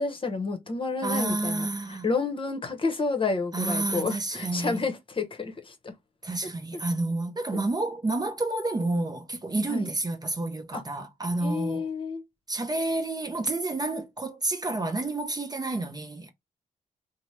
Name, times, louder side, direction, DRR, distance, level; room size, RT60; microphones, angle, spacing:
voice 1, 0.0-5.9 7.5-7.6 9.7-9.9 10.7-10.8 11.4-12.2, left 4 dB, 35° left, 0.9 m, -30 dB
voice 2, 1.0-2.1 3.5-4.8 6.2-11.9 12.5-16.3, right 2 dB, 25° right, 0.6 m, -29 dB
2.8 x 2.1 x 3.1 m
cardioid pair, 60°, 15 cm